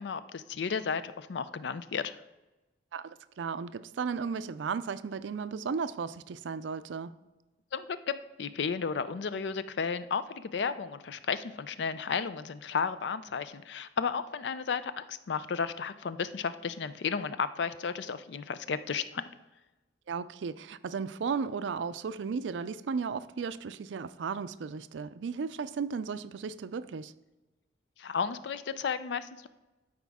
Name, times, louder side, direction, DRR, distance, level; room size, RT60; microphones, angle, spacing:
voice 1, 0.0-2.2 7.7-19.2 28.0-29.5, left 6 dB, 70° left, 0.4 m, -33 dB
voice 2, 2.9-7.1 20.1-27.1, right 5 dB, 80° right, 0.4 m, -35 dB
12.5 x 4.9 x 3.5 m
head